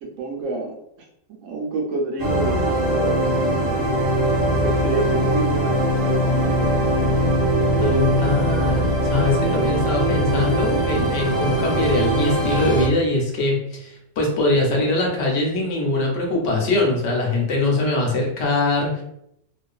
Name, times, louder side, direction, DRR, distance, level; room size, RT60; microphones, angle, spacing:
voice 1, 0.0-0.7 1.3-4.0 4.6-7.2, right 2 dB, 90° right, 1 dB, 1.0 m, -29 dB
sound 1, 2.2-12.9, right 1 dB, 35° right, 1.0 m, -21 dB
voice 2, 7.8-19.0, left 2 dB, 70° left, -1 dB, 1.0 m, -22 dB
2.5 x 2.3 x 2.3 m, 0.76 s
omnidirectional pair, 1.3 m